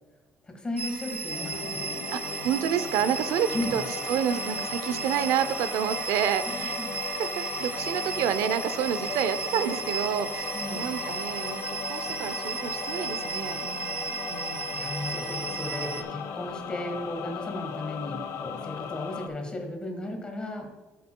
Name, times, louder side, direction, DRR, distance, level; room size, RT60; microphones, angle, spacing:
voice 1, 0.5-1.9 3.5-3.8 6.8-6.9 10.5-10.9 14.7-20.7, left 1 dB, 15° left, 3 dB, 1.5 m, -35 dB
sound 1, 0.8-16.0, right 4 dB, 30° right, 0.5 m, -35 dB
sound 2, 1.3-19.3, left 7 dB, 65° left, 0.9 m, -37 dB
voice 2, 2.1-14.8, right 9 dB, 80° right, 13 dB, 0.6 m, -29 dB
13.5 x 6.8 x 2.3 m, 1.3 s
cardioid pair, 150°, 5 cm